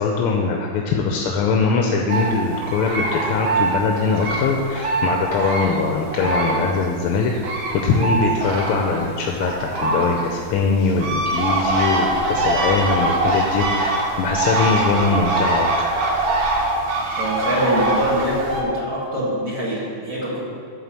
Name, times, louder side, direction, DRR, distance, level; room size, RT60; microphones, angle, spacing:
voice 1, 0.0-7.3 7.8-15.9, left 4 dB, 90° left, 1 dB, 1.7 m, -21 dB
sound 1, 2.1-6.9 7.1-18.6, right 2 dB, 65° right, 2.0 m, -23 dB
voice 2, 17.2-20.4, equal, 40° right, -7 dB, 2.2 m, -23 dB
12.0 x 4.5 x 7.4 m, 2.2 s
omnidirectional pair, 2.4 m